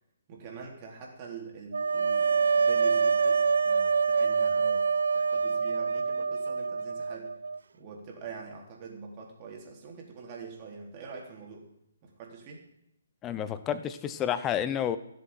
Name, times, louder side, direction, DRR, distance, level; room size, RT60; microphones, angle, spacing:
voice 1, 0.3-7.4 7.7-11.7 12.0-12.6, right 5 dB, 30° right, 0 dB, 3.8 m, -44 dB
sound 1, 1.7-7.6, right 5 dB, 65° right, 0.4 m, -26 dB
voice 2, 13.2-15.0, left 9 dB, 15° left, 12 dB, 0.9 m, -30 dB
16.0 x 7.6 x 9.1 m, 0.78 s
figure-of-eight pair, 135°, 0 cm